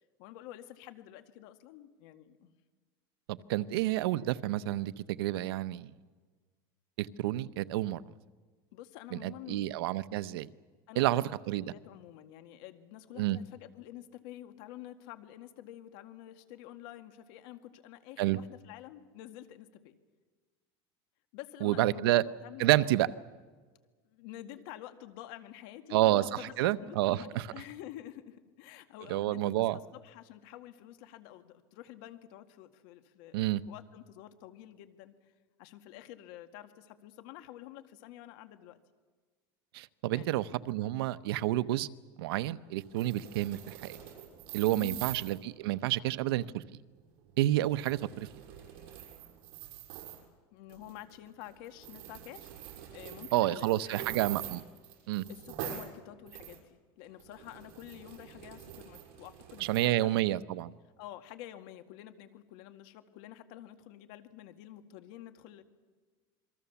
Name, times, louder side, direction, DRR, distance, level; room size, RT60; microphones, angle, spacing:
voice 1, 0.2-2.5 8.7-9.7 10.9-20.0 21.3-22.8 24.0-35.3 35.6-38.8 40.1-40.4 44.8-45.0 50.5-54.3 55.3-60.4 61.0-65.6, left 13 dB, 70° left, 8 dB, 2.0 m, -49 dB
voice 2, 3.3-5.9 7.0-8.0 9.1-10.5 11.0-11.6 13.2-13.4 18.2-18.4 21.6-22.2 22.6-23.1 25.9-26.3 26.6-27.5 29.1-29.8 33.3-33.6 39.7-41.9 42.2-44.0 44.5-46.6 47.4-48.3 53.3-54.6 55.1-55.3 59.6-60.7, right 15 dB, 90° right, 15 dB, 0.8 m, -29 dB
sound 1, 42.8-45.4 47.5-50.3 50.7-51.2 51.4-51.5 51.8-55.9 56.3-56.6 57.0-59.9, right 11 dB, 60° right, 6.0 m, -45 dB
27.5 x 23.0 x 7.1 m, 1.4 s
supercardioid pair, 145°, 12 cm